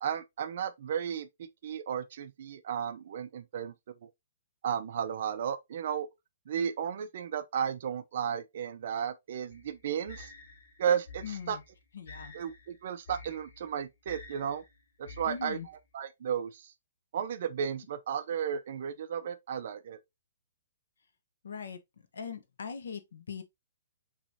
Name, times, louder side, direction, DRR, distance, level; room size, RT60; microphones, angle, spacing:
voice 1, 0.0-4.1 4.6-6.1 6.5-10.3 10.8-11.6 12.3-14.6 15.0-15.6 15.9-16.7 17.1-20.0, right 8 dB, 45° right, 0.6 m, -34 dB
sound 1, 9.5-15.8, left 3 dB, 55° left, 1.7 m, -50 dB
voice 2, 11.2-11.6 11.9-12.4 15.2-15.7 21.4-23.4, left 6 dB, 85° left, 1.1 m, -41 dB
5.9 x 3.1 x 2.7 m
hypercardioid pair, 175°, 0 cm